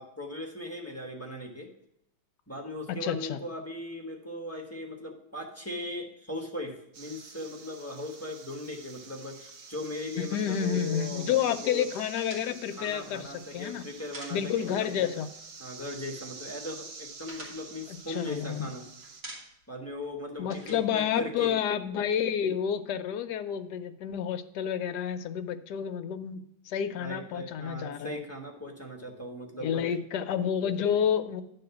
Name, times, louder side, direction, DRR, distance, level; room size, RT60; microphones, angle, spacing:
voice 1, 0.0-1.7 2.5-11.9 12.8-15.1 15.6-18.8 19.7-21.5 26.9-29.8, left 1 dB, 10° left, 0 dB, 0.7 m, -39 dB
voice 2, 2.9-3.4 10.2-13.8 14.3-15.3 17.9-18.7 20.4-28.2 29.6-31.4, left 8 dB, 70° left, 9 dB, 1.1 m, -30 dB
sound 1, 6.9-19.2, right 4 dB, 85° right, 1.9 m, -47 dB
sound 2, 12.2-15.0 15.2-15.4 15.7-16.4 16.7-18.7 19.0-19.8 20.0-21.9, right 2 dB, 55° right, 2.9 m, -47 dB
11.0 x 3.9 x 6.8 m, 0.76 s
omnidirectional pair, 2.2 m